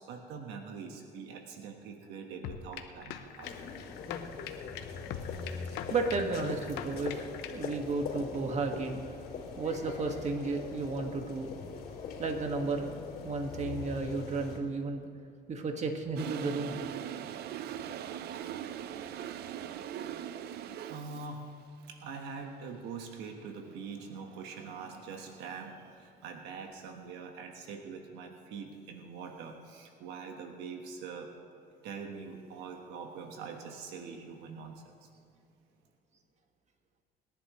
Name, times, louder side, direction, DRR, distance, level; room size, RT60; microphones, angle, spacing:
voice 1, 0.0-3.6 4.3-4.4 20.5-21.5 21.9-31.3 31.8-35.1, right 5 dB, 85° right, 4 dB, 1.3 m, -44 dB
sound 1, 2.4-7.8, left 9 dB, 85° left, 0.9 m, -43 dB
sound 2, 3.4-14.6, left 5 dB, 65° left, 2.7 m, -41 dB
voice 2, 5.9-9.0 9.6-11.5 12.2-12.9 13.2-15.1 15.5-16.8, right 3 dB, 40° right, 4 dB, 1.7 m, -33 dB
Toilet flush, 16.2-21.4, right 10 dB, 70° right, 0.6 m, -40 dB
26.0 x 11.0 x 3.1 m, 2.5 s
cardioid pair, 100°, 17 cm